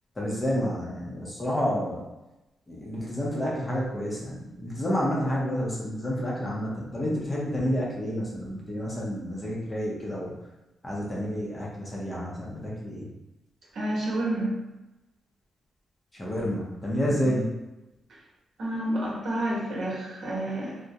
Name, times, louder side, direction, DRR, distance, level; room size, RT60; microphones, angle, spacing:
voice 1, 0.2-2.0 2.7-10.3 10.8-13.1 16.1-17.5, equal, 20° left, -5 dB, 0.6 m, -29 dB
voice 2, 13.7-14.6 17.1-17.2 18.6-20.8, right 1 dB, 65° right, -5 dB, 0.9 m, -29 dB
2.3 x 2.1 x 2.7 m, 0.97 s
wide cardioid pair, 135°, 0 cm